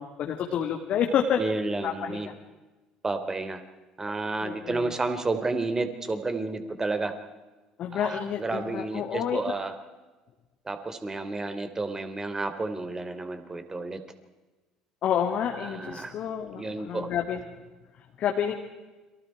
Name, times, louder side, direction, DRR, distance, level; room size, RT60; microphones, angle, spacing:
voice 1, 0.0-1.4 1.8-2.3 4.4-4.9 7.8-9.4 15.0-17.4 18.2-18.5, left 8 dB, 50° left, 2 dB, 2.4 m, -29 dB
voice 2, 1.4-2.3 3.0-3.6 4.0-7.1 7.9-9.7 10.7-14.0 15.6-16.1 16.5-17.1, right 3 dB, 20° right, 9 dB, 3.2 m, -31 dB
30.0 x 24.5 x 4.7 m, 1.2 s
figure-of-eight pair, 60°, 3 cm